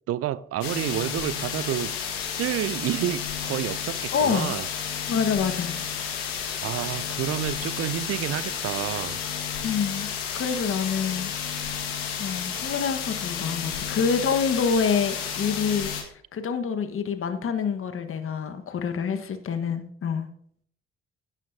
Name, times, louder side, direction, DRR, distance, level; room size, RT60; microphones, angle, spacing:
voice 1, 0.1-4.7 6.6-9.2 11.6-11.8, right 13 dB, 50° right, 0.5 m, -29 dB
sound 1, 0.6-16.0, left 8 dB, 80° left, 1.8 m, -31 dB
voice 2, 4.1-4.6 5.1-5.7 9.6-10.1 10.3-11.3 12.2-15.9 16.3-20.3, left 6 dB, 45° left, 1.4 m, -26 dB
16.0 x 9.0 x 2.8 m
figure-of-eight pair, 45°, 30 cm